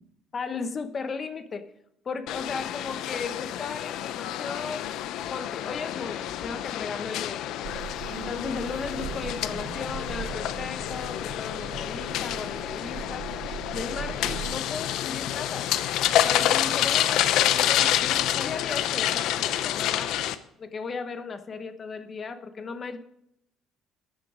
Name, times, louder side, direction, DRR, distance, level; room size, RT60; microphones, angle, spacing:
voice 1, 0.3-1.6 2.0-4.9 5.3-7.6 8.1-13.3 13.7-15.7 16.2-20.2 20.6-23.0, left 5 dB, 30° left, 10 dB, 1.0 m, -36 dB
sound 1, 2.3-20.3, left 12 dB, 75° left, 0.7 m, -28 dB
sound 2, 7.6-14.6, right 10 dB, 65° right, 0.5 m, -40 dB
14.0 x 8.4 x 5.0 m, 0.77 s
cardioid pair, 140°, 0 cm